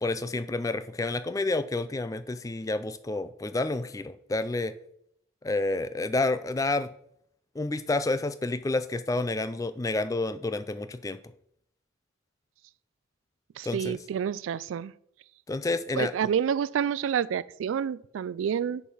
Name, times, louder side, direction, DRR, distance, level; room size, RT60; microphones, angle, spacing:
voice 1, 0.0-4.7 5.4-6.9 7.6-11.2 13.6-14.0 15.5-16.1, left 2 dB, 15° left, 12 dB, 0.3 m, -29 dB
voice 2, 13.6-14.9 15.9-18.8, right 8 dB, 85° right, 19 dB, 0.3 m, -28 dB
6.8 x 4.7 x 5.5 m, 0.71 s
head